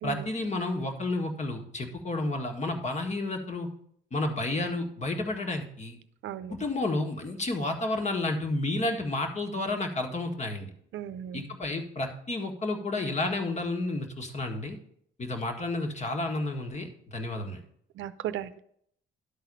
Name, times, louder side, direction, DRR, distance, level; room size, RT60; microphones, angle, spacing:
voice 1, 0.0-3.7 4.1-6.0 6.5-10.7 11.3-14.8 15.2-17.6, left 2 dB, 35° left, 4 dB, 1.7 m, -31 dB
voice 2, 6.2-6.5 10.9-11.4 18.0-18.6, right 10 dB, 80° right, 13 dB, 0.6 m, -36 dB
11.5 x 4.1 x 5.4 m, 0.67 s
cardioid pair, 90°, 20 cm